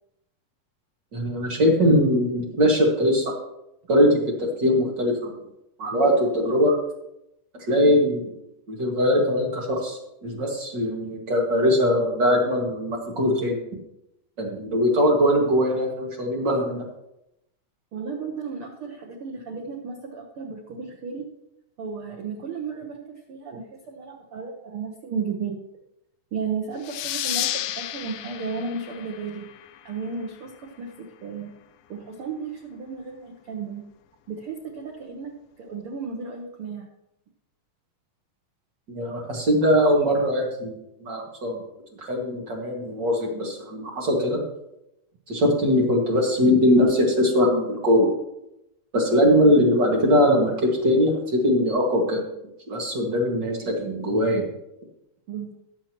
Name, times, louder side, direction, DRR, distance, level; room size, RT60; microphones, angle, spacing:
voice 1, 1.1-3.3 3.9-5.3 5.8-6.7 7.7-8.3 8.7-13.6 14.4-16.8 38.9-40.8 41.0-41.6 42.0-44.4 45.3-48.1 48.9-52.2 52.7-54.5, equal, 35° right, -2 dB, 2.1 m, -21 dB
voice 2, 17.9-21.3 21.8-23.0 23.3-25.6 26.3-29.5 29.8-31.5 31.9-33.8 34.3-35.3 35.6-36.9 55.3-55.5, right 5 dB, 75° right, 1 dB, 1.2 m, -34 dB
sound 1, 26.8-30.1, left 13 dB, 80° left, 2.2 m, -32 dB
19.5 x 7.3 x 3.0 m, 0.86 s
omnidirectional pair, 4.1 m